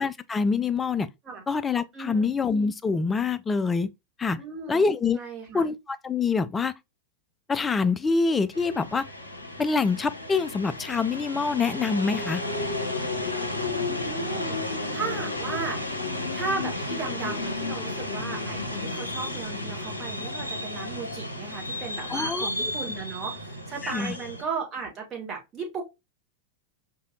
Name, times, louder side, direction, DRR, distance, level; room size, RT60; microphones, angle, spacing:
voice 1, 0.0-1.1 1.5-3.9 4.2-4.4 4.7-5.2 5.5-6.7 7.5-9.1 9.6-12.4 22.1-22.7 23.8-24.2, left 4 dB, 15° left, 0.3 m, -25 dB
voice 2, 1.9-2.3 4.4-4.8 5.1-5.6 13.9-15.8 16.3-25.8, right 5 dB, 25° right, 1.6 m, -35 dB
sound 1, 8.5-24.4, left 2 dB, 85° left, 0.7 m, -32 dB
5.0 x 2.7 x 2.3 m
figure-of-eight pair, 90°, 0 cm